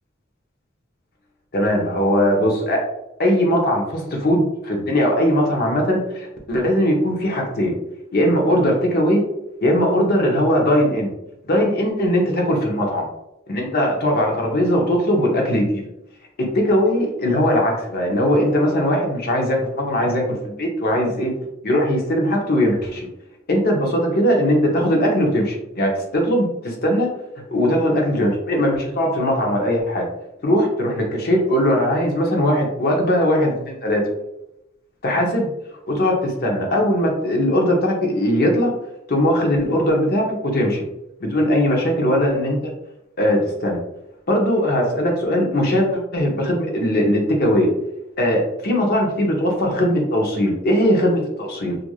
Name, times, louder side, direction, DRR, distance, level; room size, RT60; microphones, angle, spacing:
voice 1, 1.5-2.8 3.2-7.7 8.1-9.2 9.6-11.1 11.4-13.1 13.5-15.8 16.4-21.3 21.6-23.1 23.5-27.1 27.5-30.1 30.4-34.1 35.0-35.5 35.9-38.7 39.1-40.8 41.2-42.7 43.2-43.8 44.3-47.7 48.2-51.8, equal, 50° left, 0 dB, 0.7 m, -19 dB
3.1 x 2.5 x 2.3 m, 0.86 s
head